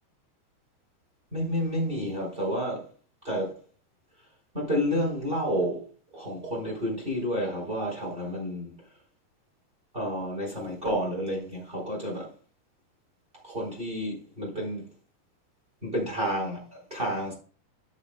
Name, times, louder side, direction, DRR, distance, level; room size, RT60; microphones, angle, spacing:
voice 1, 1.3-2.9 3.2-3.5 4.5-5.8 6.1-8.7 9.9-12.3 13.4-14.8 15.8-17.3, equal, 10° right, 4.2 m, -30 dB
8.3 x 8.2 x 3.8 m
omnidirectional pair, 5.0 m